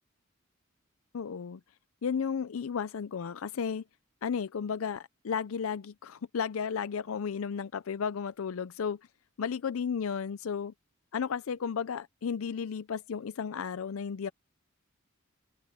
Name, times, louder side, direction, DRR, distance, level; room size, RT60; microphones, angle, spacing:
voice 1, 1.1-1.6 2.0-3.8 4.2-9.0 9.4-10.7 11.1-14.3, left 6 dB, 80° left, 0.5 m, -33 dB
head